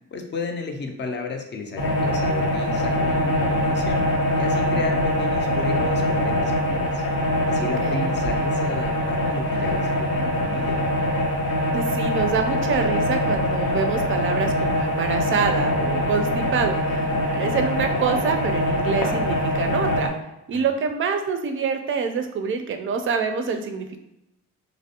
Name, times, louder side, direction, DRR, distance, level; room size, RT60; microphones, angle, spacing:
voice 1, 0.1-4.0 4.4-7.0 7.5-10.8 20.5-20.7, left 4 dB, 35° left, 4 dB, 0.5 m, -33 dB
sound 1, 1.8-20.1, left 1 dB, 90° left, 0.7 m, -23 dB
voice 2, 7.6-8.1 11.7-20.1 20.5-24.0, right 5 dB, 45° right, 6 dB, 0.4 m, -26 dB
2.4 x 2.0 x 2.7 m, 0.90 s
cardioid pair, 90°, 30 cm